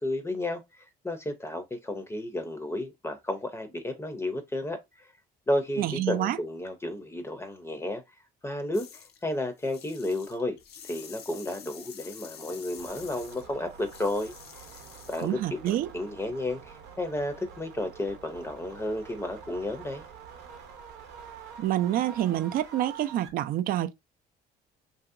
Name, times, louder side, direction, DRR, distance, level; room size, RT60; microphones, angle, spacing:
voice 1, 0.0-5.1 5.5-8.0 8.4-10.6 10.8-14.3 15.1-20.0, left 1 dB, 15° left, 0.6 m, -32 dB
voice 2, 5.8-6.4 15.2-15.9 21.6-23.9, right 13 dB, 60° right, 0.4 m, -27 dB
sound 1, 8.7-9.2 9.6-15.4, left 8 dB, 75° left, 0.6 m, -48 dB
selection sort, 12.8-23.3, right 6 dB, 85° right, 0.7 m, -47 dB
2.9 x 2.7 x 2.4 m
cardioid pair, 110°, 17 cm